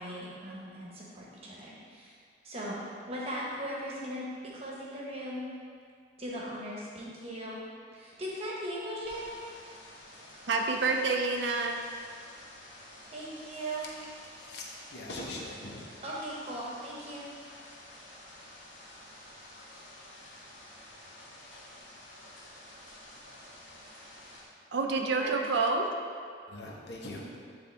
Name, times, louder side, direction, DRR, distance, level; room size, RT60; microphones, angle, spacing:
voice 1, 0.0-2.2 2.4-2.8 3.1-5.5 6.2-7.6 7.9-9.3 13.1-13.9 16.0-17.3 24.9-25.3, equal, 30° right, -5 dB, 1.1 m, -38 dB
sound 1, 9.0-24.4, left 1 dB, 80° left, 1.5 m, -51 dB
voice 2, 10.5-11.8 24.7-25.9, right 3 dB, 65° right, 3 dB, 0.5 m, -28 dB
voice 3, 14.4-15.9 26.5-27.3, left 1 dB, 60° left, -3 dB, 0.9 m, -41 dB
9.3 x 3.5 x 3.4 m, 2.2 s
head